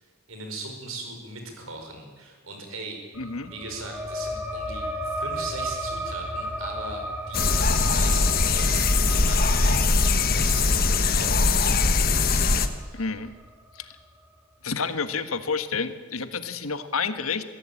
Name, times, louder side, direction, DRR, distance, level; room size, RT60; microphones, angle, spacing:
voice 1, 0.3-3.0 3.5-13.1, right 2 dB, 75° right, 3 dB, 5.5 m, -40 dB
sound 1, 3.1-14.3, equal, 5° right, 2.6 m, -35 dB
voice 2, 3.2-3.5 12.9-13.3 13.7-13.9 14.6-17.4, left 5 dB, 85° left, 10 dB, 1.5 m, -29 dB
sound 2, 7.3-12.7, left 3 dB, 45° left, 1.3 m, -21 dB
22.5 x 16.0 x 8.6 m, 1.4 s
head